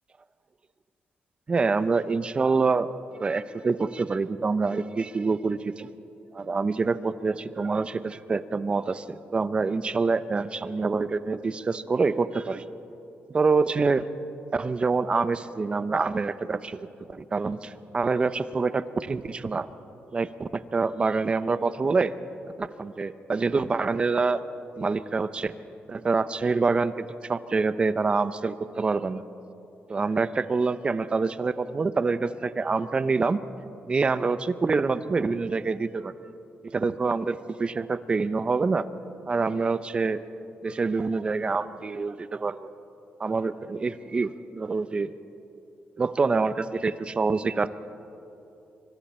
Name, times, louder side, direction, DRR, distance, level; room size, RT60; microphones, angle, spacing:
voice 1, 1.5-2.9 3.1-5.9 6.3-12.6 13.3-14.1 14.5-16.8 17.1-19.7 20.1-22.1 22.6-24.4 24.8-25.5 25.9-29.2 29.9-33.4 33.9-36.1 36.6-38.8 39.3-40.2 40.6-42.7 43.2-45.1 46.0-47.7, right 4 dB, 25° right, 13 dB, 0.7 m, -26 dB
26.5 x 25.0 x 4.4 m, 2.9 s
cardioid pair, 140°, 4 cm